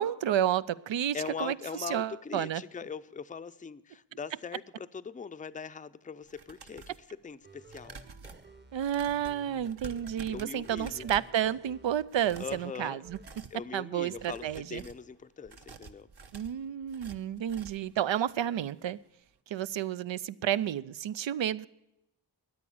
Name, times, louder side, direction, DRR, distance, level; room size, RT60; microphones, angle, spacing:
voice 1, 0.0-1.6 1.9-2.6 8.7-13.2 13.7-14.8 16.3-19.0 19.5-21.7, right 10 dB, 90° right, 0.5 m, -31 dB
voice 2, 1.1-8.0 10.3-11.1 12.4-13.0 13.5-16.1, left 6 dB, 20° left, 0.4 m, -41 dB
sound 1, 6.2-7.1 7.7-11.4 12.0-12.7 13.1-13.6 14.1-15.1 15.4-17.9 18.3-18.4 18.8-18.9, right 4 dB, 60° right, 1.0 m, -49 dB
sound 2, 7.4-10.2 10.6-13.4 14.0-14.6, right 3 dB, 25° right, 0.8 m, -54 dB
13.5 x 9.6 x 7.0 m
wide cardioid pair, 70°, 44 cm